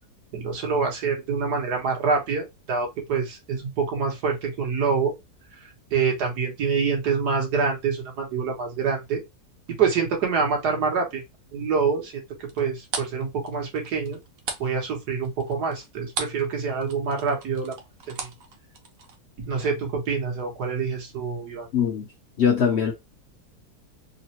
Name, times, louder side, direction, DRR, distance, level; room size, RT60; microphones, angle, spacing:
voice 1, 0.3-5.1 5.9-9.2 9.8-11.2 11.5-12.2 12.6-14.2 14.6-17.7 18.1-18.3 19.4-21.7, right 5 dB, 85° right, 1.7 m, -26 dB
sound 1, 12.5-16.5 16.8-19.2, right 5 dB, 65° right, 1.0 m, -35 dB
voice 2, 21.7-22.1 22.4-22.9, left 7 dB, 60° left, 0.7 m, -21 dB
3.7 x 2.1 x 2.8 m
omnidirectional pair, 1.7 m